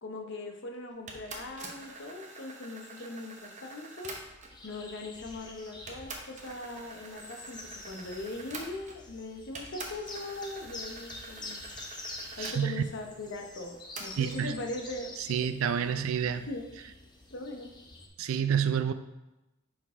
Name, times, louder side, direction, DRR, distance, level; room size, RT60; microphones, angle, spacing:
voice 1, 0.0-4.1 4.6-11.6 12.4-15.5 16.5-16.7 17.3-17.7, left 2 dB, 55° left, 3 dB, 0.8 m, -40 dB
sound 1, 1.1-4.6 5.4-5.5 5.9-9.2 9.5-12.6 14.0-14.4, right 3 dB, 35° right, 0.8 m, -46 dB
sound 2, 4.5-18.1, left 2 dB, 20° left, 0.7 m, -47 dB
voice 2, 12.4-12.8 14.2-14.5 15.3-16.5 18.2-18.9, right 8 dB, 65° right, 11 dB, 0.3 m, -28 dB
5.6 x 4.6 x 3.6 m, 0.99 s
head